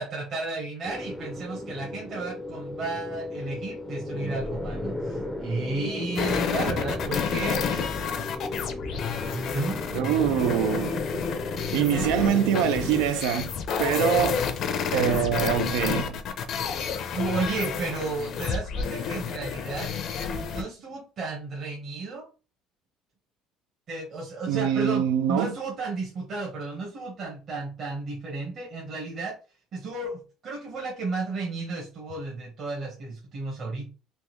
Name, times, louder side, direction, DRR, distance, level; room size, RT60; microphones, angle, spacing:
voice 1, 0.0-7.9 9.3-10.2 11.7-12.4 17.1-19.9 20.4-22.3 23.9-29.4 29.7-33.9, right 3 dB, 45° right, 1.1 m, -33 dB
sound 1, 0.8-13.1, left 1 dB, ahead, 0.5 m, -35 dB
sound 2, 6.2-20.6, left 6 dB, 50° left, 0.5 m, -30 dB
voice 2, 9.9-11.0 11.7-13.5 13.8-14.4 14.9-16.2 24.5-25.5, right 10 dB, 85° right, 0.4 m, -24 dB
3.5 x 2.5 x 3.0 m
cardioid pair, 125°, 0 cm